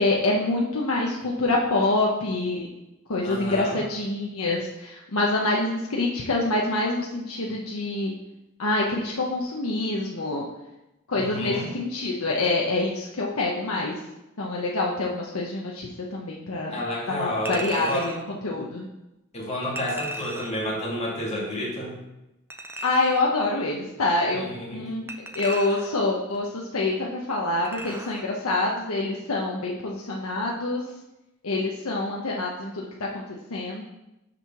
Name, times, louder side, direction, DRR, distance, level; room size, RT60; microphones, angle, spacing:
voice 1, 0.0-2.7 3.1-8.1 8.6-10.5 11.1-14.0 14.4-16.8 17.1-18.9 22.8-24.4 24.7-30.8 31.4-33.8, left 2 dB, 85° left, -2 dB, 0.9 m, -26 dB
voice 2, 3.2-3.8 11.1-11.7 16.7-18.1 19.3-22.0 24.3-24.9, equal, 30° left, -5 dB, 2.2 m, -30 dB
Chink clink, 17.5-18.2 19.8-20.7 22.5-23.3 25.1-26.1 27.6-28.3 28.7-28.8, right 1 dB, 10° right, 0.5 m, -36 dB
6.4 x 4.7 x 5.8 m, 0.93 s
head